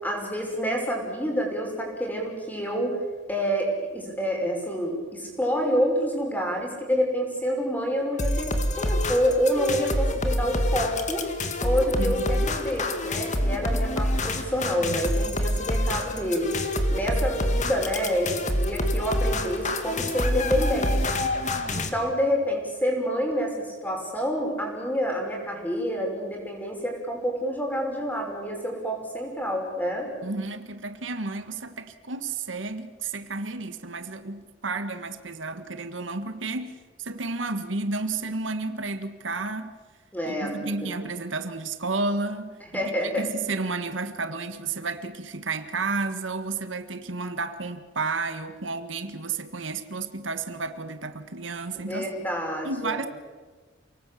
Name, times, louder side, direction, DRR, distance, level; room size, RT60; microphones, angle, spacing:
voice 1, 0.0-3.0 3.3-8.5 8.8-11.3 11.6-16.5 16.9-21.1 21.7-30.1 40.1-40.9 42.7-43.2 51.7-53.1, equal, 10° left, 5.7 m, -28 dB
sound 1, 8.2-21.9, left 1 dB, 40° left, 2.3 m, -26 dB
voice 2, 12.0-12.5 30.2-39.8 40.3-52.1 52.6-53.1, right 3 dB, 80° right, 1.6 m, -32 dB
28.5 x 19.0 x 8.5 m
head